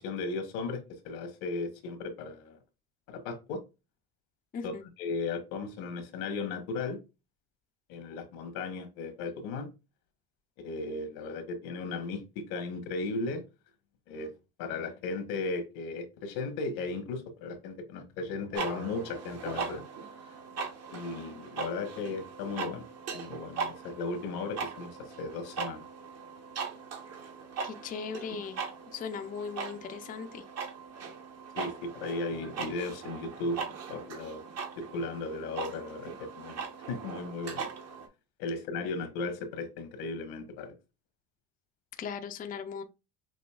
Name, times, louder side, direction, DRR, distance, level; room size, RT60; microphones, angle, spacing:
voice 1, 0.0-2.6 3.1-3.6 4.6-7.0 7.9-9.7 10.6-13.4 14.1-14.3 14.6-19.8 20.9-22.8 23.1-25.9 31.6-33.6 33.9-34.4 34.8-37.7 38.4-40.7, left 3 dB, 85° left, 1.2 m, -36 dB
sound 1, 18.5-38.1, right 5 dB, 45° right, 1.0 m, -40 dB
voice 2, 27.6-28.6 28.9-30.4 42.0-42.8, left 6 dB, 25° left, 0.4 m, -38 dB
6.1 x 2.7 x 2.3 m
cardioid pair, 120°, 37 cm